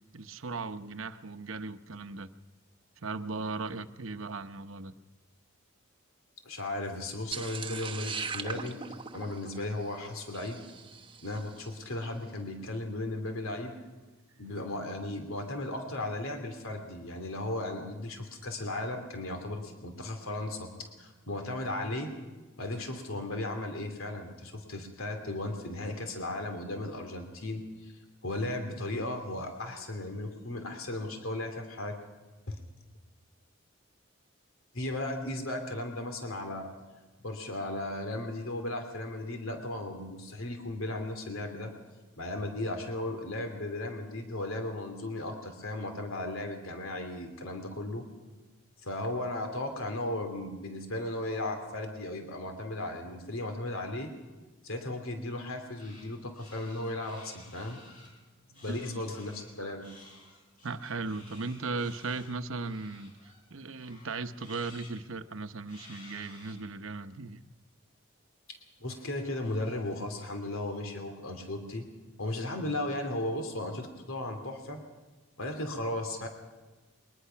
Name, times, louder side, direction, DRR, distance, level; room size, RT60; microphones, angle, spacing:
voice 1, 0.1-2.3 3.0-5.0 58.5-59.0 60.6-67.5, right 3 dB, 65° right, 0.9 m, -37 dB
voice 2, 6.4-8.8 9.1-10.6 11.2-13.7 14.4-22.1 22.6-32.0 32.5-32.6 34.7-36.7 37.2-41.7 42.2-48.0 48.8-54.1 54.6-57.8 58.6-59.9 68.8-71.9 72.2-74.8 75.4-76.3, left 1 dB, 70° left, 2.8 m, -36 dB
sound 1, 7.3-11.6, right 5 dB, 20° right, 1.0 m, -40 dB
sound 2, 55.8-56.1 56.3-58.1 58.5-59.5 59.8-63.4 63.7-65.0 65.7-66.5, left 2 dB, 35° left, 6.5 m, -54 dB
22.5 x 20.5 x 5.8 m
head